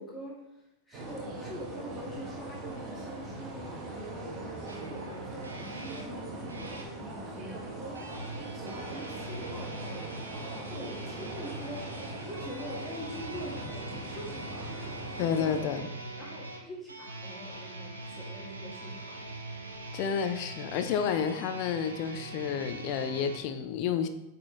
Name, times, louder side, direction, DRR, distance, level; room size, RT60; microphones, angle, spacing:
voice 1, 0.0-4.4 4.7-8.2 8.5-10.2 10.5-14.7 15.4-15.9 16.2-19.3, equal, 5° left, -7 dB, 2.3 m, -44 dB
sound 1, 0.9-15.6, right 2 dB, 30° right, 1.7 m, -41 dB
sound 2, 4.7-6.9 7.9-23.4, right 2 dB, 80° right, 1.0 m, -42 dB
voice 2, 15.2-15.9 19.9-24.1, left 7 dB, 45° left, 9 dB, 0.5 m, -30 dB
8.6 x 4.3 x 3.6 m, 0.90 s
figure-of-eight pair, 90°, 0 cm